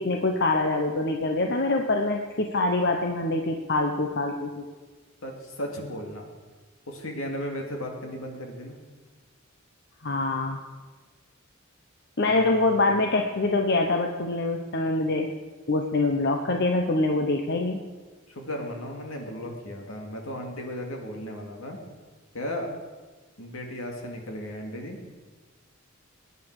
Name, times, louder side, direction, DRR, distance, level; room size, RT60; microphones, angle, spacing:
voice 1, 0.0-4.7 10.0-10.6 12.2-15.3 15.7-17.8, left 2 dB, 55° left, 3 dB, 1.0 m, -25 dB
voice 2, 5.2-6.3 6.9-8.7 12.2-12.9 18.3-21.8 22.3-22.7 23.4-25.0, equal, 75° left, 2 dB, 2.4 m, -35 dB
20.0 x 9.5 x 4.9 m, 1.4 s
head